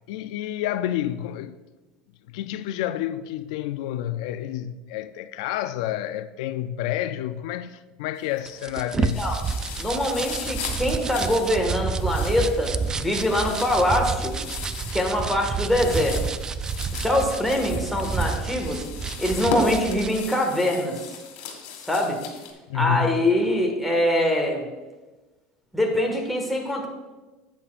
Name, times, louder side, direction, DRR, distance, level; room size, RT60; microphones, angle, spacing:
voice 1, 0.1-1.6 2.3-9.3 16.8-16.9 22.7-23.2, left 11 dB, 85° left, 0.4 m, -29 dB
sound 1, 8.2-8.7 9.0-22.5, left 5 dB, 65° left, 2.1 m, -37 dB
sound 2, 8.5-20.2, right 5 dB, 20° right, 0.3 m, -29 dB
voice 2, 9.8-14.4 14.9-16.2 17.0-18.8 19.2-21.2 21.8-22.2 22.7-24.7 25.7-26.9, left 1 dB, ahead, 1.7 m, -23 dB
11.5 x 8.4 x 2.5 m
supercardioid pair, 130°, 3 cm